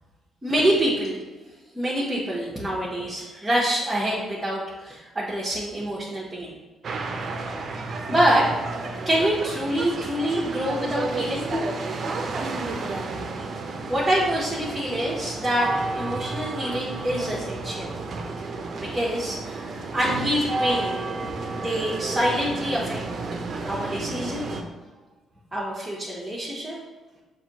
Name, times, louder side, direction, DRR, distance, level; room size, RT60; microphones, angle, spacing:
voice 1, 0.4-1.2 1.7-6.5 8.1-8.5 9.1-11.5 13.9-15.7 15.9-17.9 18.8-21.0 21.5-23.0 23.6-24.5 25.5-26.8, equal, 10° right, -8 dB, 0.9 m, -26 dB
sound 1, 6.8-24.6, right 3 dB, 50° right, 0.5 m, -31 dB
sound 2, 11.5-14.9, left 1 dB, 10° left, 0.5 m, -38 dB
5.8 x 2.6 x 2.9 m, 1.2 s
cardioid pair, 90°, 0 cm